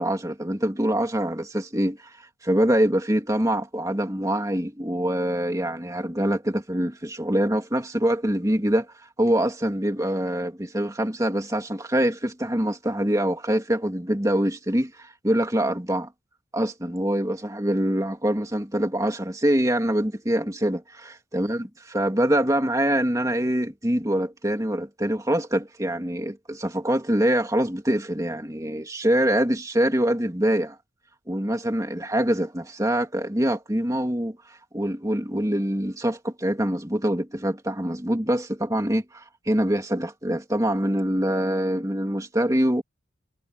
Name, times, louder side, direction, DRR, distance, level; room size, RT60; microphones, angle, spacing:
voice 1, 0.0-2.1 2.4-8.9 9.2-16.1 16.5-21.7 21.9-30.8 31.3-34.4 34.7-42.8, right 1 dB, 15° right, 2.7 m, -24 dB
head